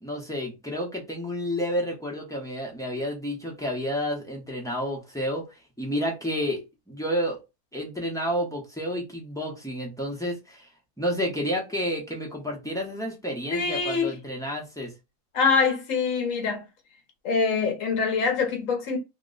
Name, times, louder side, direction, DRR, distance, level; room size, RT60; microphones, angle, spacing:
voice 1, 0.0-5.4 5.8-6.6 6.9-7.4 7.7-10.7 11.0-14.9, equal, 5° left, 0.4 m, -30 dB
voice 2, 13.5-14.1 15.3-16.6 17.2-19.0, left 5 dB, 65° left, 1.0 m, -24 dB
2.9 x 2.0 x 3.8 m
omnidirectional pair, 1.6 m